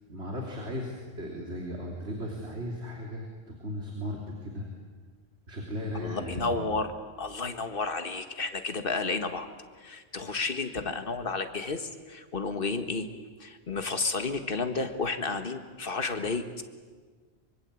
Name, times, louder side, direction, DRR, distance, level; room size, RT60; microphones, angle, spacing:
voice 1, 0.1-4.7 5.5-6.6, left 1 dB, 75° right, 0 dB, 3.4 m, -36 dB
voice 2, 5.9-9.5 9.8-13.1 13.4-16.6, left 3 dB, 55° left, 8 dB, 1.8 m, -32 dB
24.5 x 24.0 x 8.4 m, 1.5 s
omnidirectional pair, 1.1 m